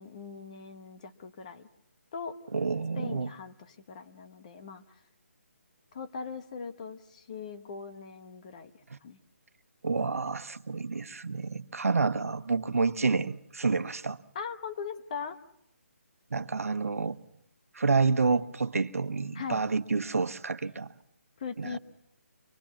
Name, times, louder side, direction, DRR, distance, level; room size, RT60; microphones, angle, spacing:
voice 1, 0.0-1.7 2.1-2.4 3.0-4.8 5.9-8.7 9.0-9.2 14.3-15.4 19.3-19.6 21.4-21.8, left 6 dB, 30° left, 1.1 m, -40 dB
voice 2, 2.5-3.3 8.9-9.0 9.8-14.2 16.3-17.2 17.7-20.9 21.6-21.8, right 4 dB, 90° right, 1.1 m, -29 dB
25.0 x 20.5 x 7.2 m
hypercardioid pair, 170°, 8 cm